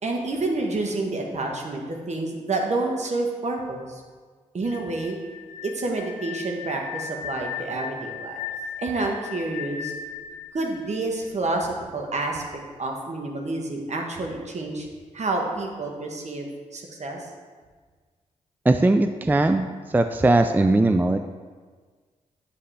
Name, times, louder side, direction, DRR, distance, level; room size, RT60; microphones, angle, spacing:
voice 1, 0.0-4.0 4.5-5.2 5.6-8.4 8.8-9.9 10.5-14.9 15.1-16.5 16.7-17.3, right 2 dB, 55° right, 1 dB, 1.3 m, -29 dB
sound 1, 4.6-11.5, left 6 dB, 85° left, 0.4 m, -37 dB
voice 2, 18.7-21.2, right 2 dB, 15° right, 8 dB, 0.4 m, -20 dB
7.6 x 6.6 x 3.4 m, 1.5 s
supercardioid pair, 45°, 14 cm